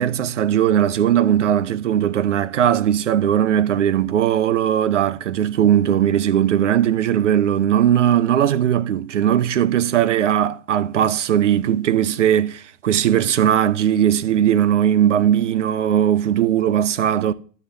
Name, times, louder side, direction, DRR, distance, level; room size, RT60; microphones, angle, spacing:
voice 1, 0.0-17.3, right 10 dB, 80° right, 0.8 m, -18 dB
12.5 x 8.0 x 3.5 m
figure-of-eight pair, 85°, 36 cm